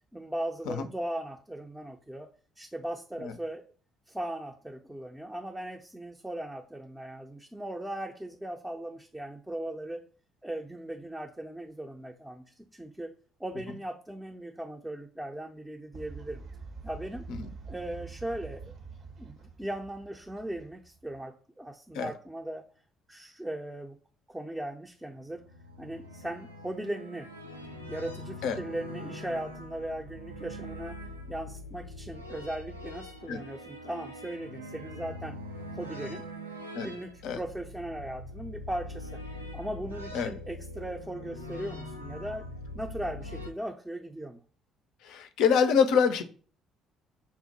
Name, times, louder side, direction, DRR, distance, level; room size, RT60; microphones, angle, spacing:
voice 1, 0.1-2.3 2.6-3.6 4.1-10.0 10.4-13.1 13.4-16.4 16.8-17.3 17.7-18.7 19.2-22.6 23.1-24.0 24.3-25.4 25.8-27.3 27.9-31.0 31.3-35.4 35.7-36.3 36.7-39.2 39.5-42.5 42.7-44.4, right 1 dB, 5° right, 1 dB, 0.5 m, -38 dB
Fowl, 15.9-21.2, right 4 dB, 50° right, 0.6 m, -45 dB
sound 1, 25.2-43.5, left 1 dB, 90° right, 0.3 m, -43 dB
voice 2, 45.0-46.2, left 6 dB, 60° left, 10 dB, 0.4 m, -26 dB
5.5 x 2.1 x 2.8 m, 0.41 s
figure-of-eight pair, 50°, 0 cm